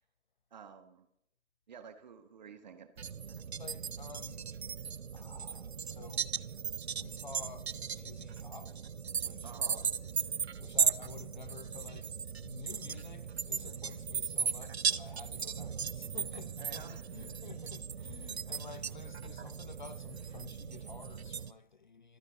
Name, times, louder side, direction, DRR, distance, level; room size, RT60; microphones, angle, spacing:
voice 1, 0.5-1.1 1.7-2.9 9.4-9.9 16.6-17.3, right 7 dB, 35° right, 1.4 m, -51 dB
sound 1, 3.0-21.5, right 7 dB, 50° right, 0.6 m, -37 dB
voice 2, 3.4-4.5 5.1-6.3 6.9-8.8 9.1-9.9 10.3-12.1 12.4-22.2, left 5 dB, 35° left, 0.7 m, -51 dB
27.5 x 10.5 x 3.8 m
figure-of-eight pair, 140°, 40 cm